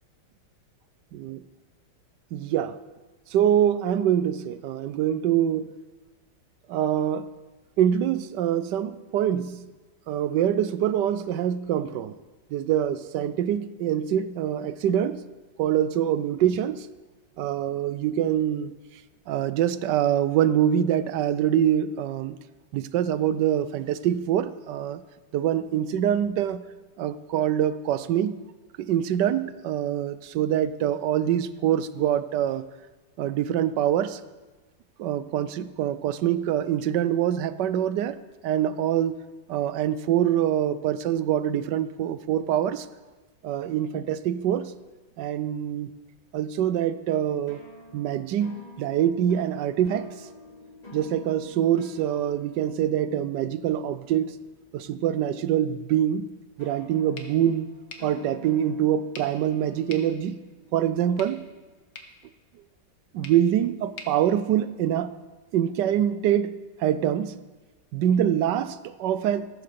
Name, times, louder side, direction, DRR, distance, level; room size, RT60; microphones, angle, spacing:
voice 1, 1.1-1.4 2.3-2.8 3.3-5.7 6.7-7.3 7.8-9.6 10.1-12.2 12.5-15.2 15.6-16.9 17.4-18.8 19.3-22.4 22.7-25.0 25.3-26.6 27.0-28.4 28.8-32.6 33.2-34.2 35.0-38.2 38.4-39.1 39.5-42.9 43.4-44.7 45.2-45.9 46.3-47.6 47.9-50.3 50.9-54.3 54.7-56.3 56.6-57.7 58.0-60.4 60.7-61.4 63.1-65.1 65.5-66.5 66.8-67.4 67.9-69.6, right 10 dB, 75° right, 14 dB, 1.2 m, -25 dB
sound 1, 47.5-55.3 56.6-61.8, left 3 dB, 20° left, 2.8 m, -49 dB
sound 2, 57.1-65.2, left 4 dB, 60° left, 1.9 m, -49 dB
14.0 x 9.6 x 6.8 m, 1.3 s
omnidirectional pair, 2.0 m